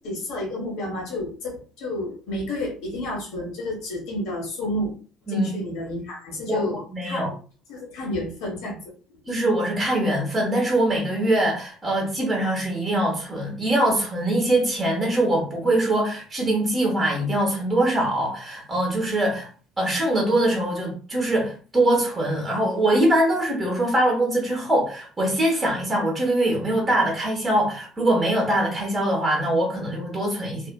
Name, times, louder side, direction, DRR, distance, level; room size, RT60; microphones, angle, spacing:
voice 1, 0.0-4.9 5.3-7.2 7.7-8.8, left 1 dB, 70° left, -1 dB, 1.2 m, -30 dB
voice 2, 6.5-7.3 9.3-19.5 19.8-30.7, right 1 dB, 20° right, -1 dB, 1.1 m, -23 dB
2.7 x 2.4 x 2.2 m, 0.39 s
hypercardioid pair, 70°, 0 cm